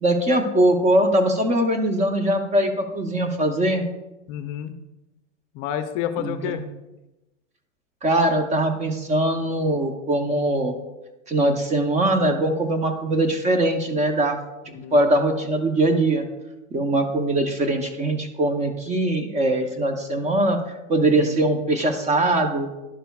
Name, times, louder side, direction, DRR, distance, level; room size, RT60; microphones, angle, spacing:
voice 1, 0.0-3.8 6.2-6.7 8.0-10.8 11.3-14.4 14.7-16.3 16.7-20.6 20.9-22.7, right 1 dB, 20° right, 6 dB, 0.7 m, -21 dB
voice 2, 4.3-4.7 5.5-6.6 14.7-15.0 21.0-21.3, left 10 dB, 40° left, 9 dB, 0.6 m, -30 dB
11.5 x 6.6 x 2.3 m, 1.0 s
hypercardioid pair, 125°, 37 cm